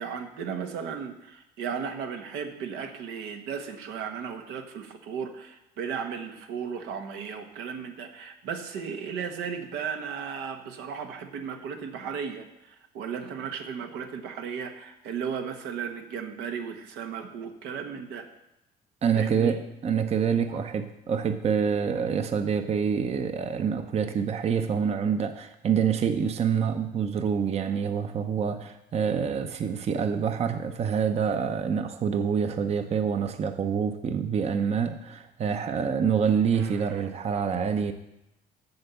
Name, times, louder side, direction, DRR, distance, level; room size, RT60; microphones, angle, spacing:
voice 1, 0.0-18.3 19.1-19.6 20.5-20.6 36.5-37.1, right 7 dB, 90° right, 5 dB, 1.2 m, -35 dB
voice 2, 19.0-37.9, right 7 dB, 40° right, 9 dB, 0.6 m, -26 dB
8.0 x 6.8 x 6.9 m, 0.88 s
cardioid pair, 110°, 17 cm